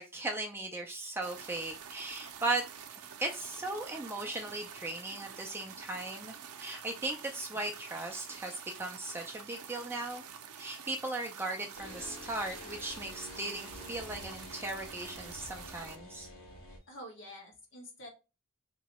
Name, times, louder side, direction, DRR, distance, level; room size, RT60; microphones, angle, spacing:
voice 1, 0.0-2.6 3.0-10.2 10.6-16.3, right 2 dB, 10° right, 2 dB, 0.4 m, -37 dB
sound 1, 1.2-16.0, right 7 dB, 85° right, 0.5 m, -48 dB
sound 2, 11.7-16.8, left 1 dB, 80° left, 1.6 m, -48 dB
voice 2, 16.9-18.1, equal, 55° left, 0 dB, 1.3 m, -47 dB
3.0 x 2.7 x 4.1 m, 0.29 s
head